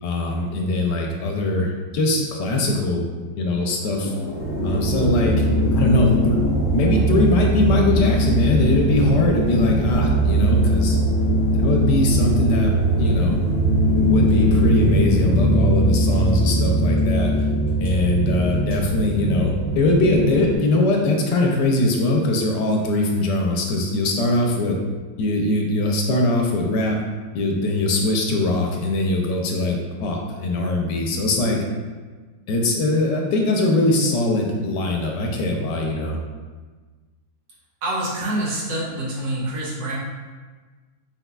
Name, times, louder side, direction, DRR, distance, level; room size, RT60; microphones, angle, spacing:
voice 1, 0.0-3.1 3.4-4.1 4.6-5.4 5.7-6.4 6.7-11.0 11.5-12.7 13.0-13.4 13.9-17.3 17.8-24.8 25.2-27.0 27.3-31.6 32.5-36.2, left 2 dB, 70° left, 1 dB, 1.2 m, -21 dB
sound 1, 3.9-15.3, left 2 dB, 50° left, 0.8 m, -34 dB
sound 2, 4.3-20.5, right 1 dB, 40° right, 1.9 m, -20 dB
voice 2, 37.8-39.9, right 1 dB, 75° right, -6 dB, 1.9 m, -26 dB
7.2 x 3.2 x 2.3 m, 1.4 s
omnidirectional pair, 2.0 m